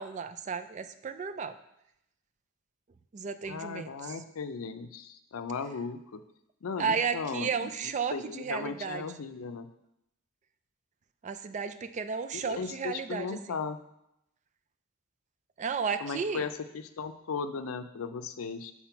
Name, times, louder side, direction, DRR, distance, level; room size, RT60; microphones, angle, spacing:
voice 1, 0.0-1.6 3.1-4.1 6.8-9.0 11.2-13.6 15.6-16.4, right 6 dB, 35° right, 11 dB, 0.3 m, -33 dB
voice 2, 3.5-6.2 6.6-9.7 12.3-13.8 16.0-18.7, left 5 dB, 90° left, 10 dB, 0.5 m, -37 dB
5.9 x 4.2 x 5.7 m, 0.82 s
head